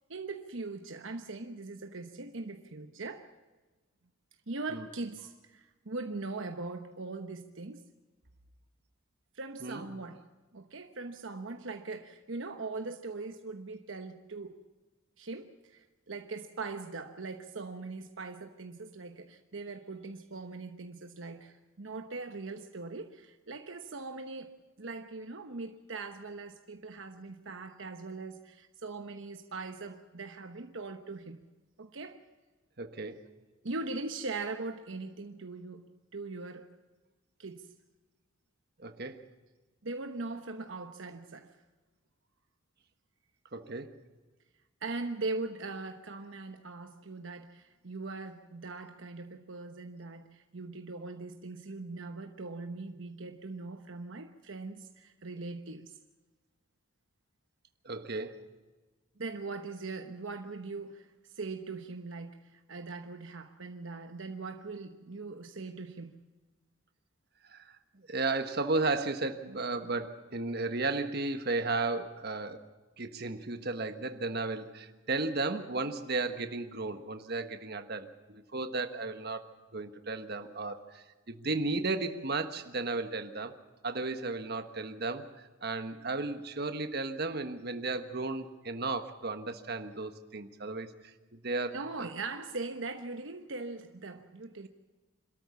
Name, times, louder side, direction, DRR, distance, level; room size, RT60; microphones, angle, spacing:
voice 1, 0.1-3.3 4.5-7.8 9.3-10.2 10.5-14.6 15.2-31.4 31.8-32.2 33.6-36.8 37.4-37.7 39.8-41.5 44.8-55.9 59.2-66.2 91.7-94.7, right 3 dB, 70° right, 1.1 m, -41 dB
voice 2, 32.8-33.2 38.8-39.3 43.5-44.0 57.8-58.4 67.5-72.6 73.0-83.5 83.8-85.3 85.6-90.9 91.3-92.1, right 3 dB, 50° right, 1.4 m, -34 dB
27.0 x 13.5 x 7.2 m
head